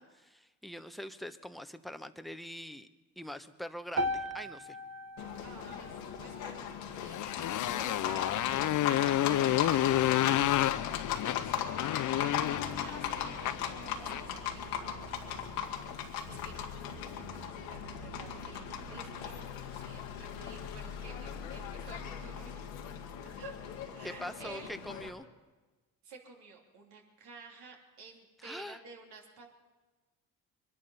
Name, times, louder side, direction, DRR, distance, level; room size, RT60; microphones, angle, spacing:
voice 1, 0.0-2.9 3.2-4.8 24.0-25.3 28.4-28.8, left 1 dB, ahead, 9 dB, 1.0 m, -43 dB
sound 1, 4.0-8.1, left 1 dB, 40° right, 1.5 m, -39 dB
Livestock farm animals working animals, 5.2-25.1, left 8 dB, 85° left, 1.8 m, -38 dB
voice 2, 5.4-12.2 12.6-22.7 23.4-24.8 26.0-29.5, right 5 dB, 70° right, 0 dB, 3.1 m, -52 dB
Motorcycle, 7.0-14.4, left 13 dB, 50° left, 0.6 m, -30 dB
24.0 x 11.0 x 5.6 m, 1.2 s
hypercardioid pair, 55°, 42 cm